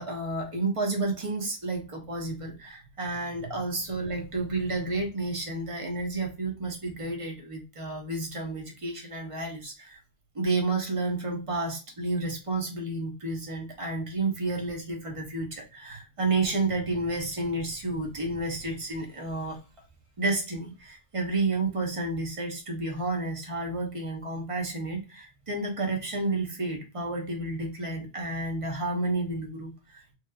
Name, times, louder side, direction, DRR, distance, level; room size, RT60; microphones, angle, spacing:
voice 1, 0.0-10.0 10.3-19.6 20.2-30.1, right 2 dB, 30° right, 0 dB, 1.0 m, -31 dB
3.1 x 2.8 x 2.2 m, 0.28 s
omnidirectional pair, 1.1 m